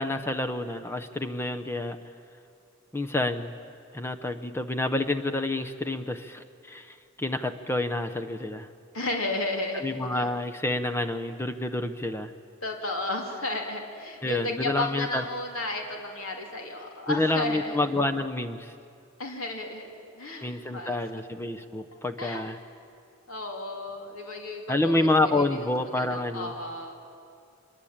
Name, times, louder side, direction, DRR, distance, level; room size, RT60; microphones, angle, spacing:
voice 1, 0.0-2.0 2.9-3.5 3.9-8.7 9.7-12.3 14.2-15.2 17.1-18.7 20.4-22.6 24.7-26.5, left 2 dB, 10° left, 8 dB, 0.7 m, -28 dB
voice 2, 8.9-10.3 12.6-17.8 19.2-21.0 21.9-22.4 23.3-25.4 25.9-26.9, left 2 dB, 75° left, 2 dB, 2.7 m, -33 dB
25.0 x 22.0 x 8.7 m, 2.5 s
head